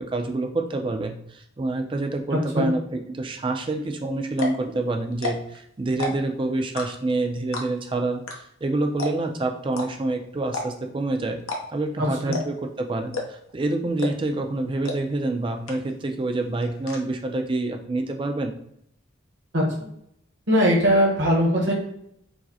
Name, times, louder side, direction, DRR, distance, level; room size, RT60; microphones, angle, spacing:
voice 1, 0.0-11.4 11.7-18.5, right 2 dB, 25° right, 5 dB, 0.3 m, -27 dB
voice 2, 2.3-2.7 12.0-12.4 19.5-19.7 20.5-21.7, equal, 60° right, -3 dB, 1.0 m, -20 dB
sound 1, 3.8-3.9 4.3-4.6 5.1-5.6 5.9-6.3 6.8-7.1 7.5-7.9 8.3-8.4 8.6-8.7 9.0-9.3 9.7-9.9 10.5-10.9 11.4-11.9 12.3-12.6 13.1-13.5 14.0-14.3 14.8-15.0 15.3-15.4 15.7-16.1 16.4-17.0, left 3 dB, 90° left, 0.7 m, -30 dB
4.7 x 2.0 x 2.8 m, 0.72 s
head